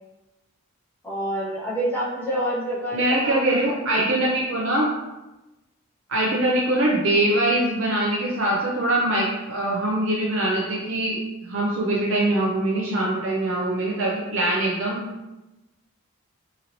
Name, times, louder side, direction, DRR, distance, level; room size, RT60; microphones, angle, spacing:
voice 1, 1.0-3.5, right 1 dB, 10° left, -10 dB, 0.8 m, -27 dB
voice 2, 2.9-4.9 6.1-15.0, right 1 dB, 60° right, -4 dB, 0.4 m, -23 dB
2.9 x 2.8 x 2.6 m, 1.0 s
head